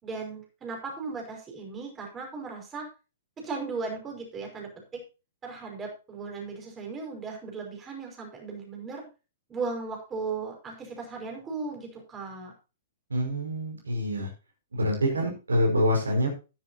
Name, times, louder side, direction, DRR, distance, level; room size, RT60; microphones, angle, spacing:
voice 1, 0.0-2.9 3.4-5.0 5.4-9.0 9.5-12.5, right 4 dB, 20° right, 1 dB, 5.6 m, -36 dB
voice 2, 13.1-14.3 14.7-16.3, equal, 85° right, 1 dB, 5.6 m, -26 dB
12.5 x 11.0 x 2.9 m, 0.31 s
figure-of-eight pair, 115°, 0 cm